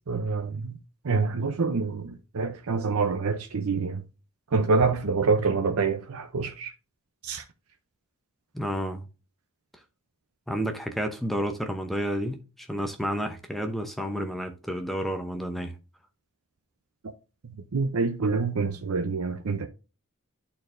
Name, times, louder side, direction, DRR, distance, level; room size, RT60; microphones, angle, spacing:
voice 1, 0.1-0.8 1.0-4.0 4.5-6.7 7.2-7.4 17.7-19.7, right 4 dB, 85° right, 0.6 m, -26 dB
voice 2, 8.5-9.0 10.5-15.7, equal, ahead, 0.7 m, -30 dB
11.0 x 4.3 x 2.5 m
head